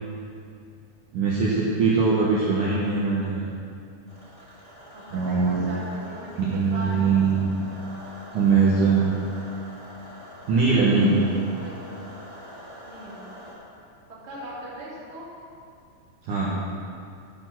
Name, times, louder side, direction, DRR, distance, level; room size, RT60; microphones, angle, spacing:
voice 1, 1.1-3.5 5.1-5.7 6.4-7.5 8.3-9.2 10.5-11.2 16.3-16.5, right 4 dB, 70° right, -7 dB, 2.0 m, -21 dB
sound 1, 4.1-13.5, equal, 30° left, 0.7 m, -44 dB
voice 2, 4.9-7.1 8.6-9.2 11.3-11.9 12.8-13.3 14.1-15.3, right 1 dB, 35° right, -7 dB, 1.0 m, -40 dB
11.5 x 6.6 x 5.9 m, 2.4 s
omnidirectional pair, 5.3 m